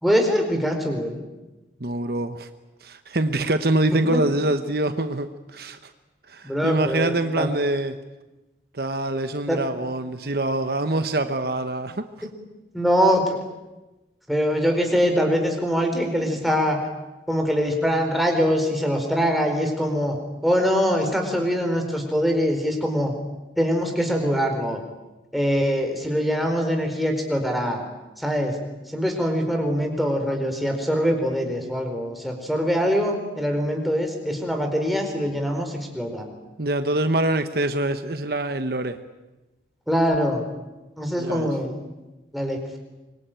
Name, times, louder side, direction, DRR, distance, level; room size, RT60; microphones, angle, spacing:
voice 1, 0.0-1.2 3.9-4.2 6.4-7.5 9.5-9.6 12.7-13.4 14.3-16.9 17.3-20.2 20.4-23.1 23.6-24.8 25.3-27.8 28.2-28.6 28.9-36.3 39.9-40.4 41.0-41.7 42.3-42.8, equal, ahead, 2 dB, 4.4 m, -23 dB
voice 2, 1.8-2.5 2.8-5.9 6.3-8.0 8.7-12.1 36.6-39.0 41.2-41.5, right 1 dB, 55° right, 9 dB, 1.1 m, -25 dB
25.0 x 23.5 x 9.2 m, 1.1 s
head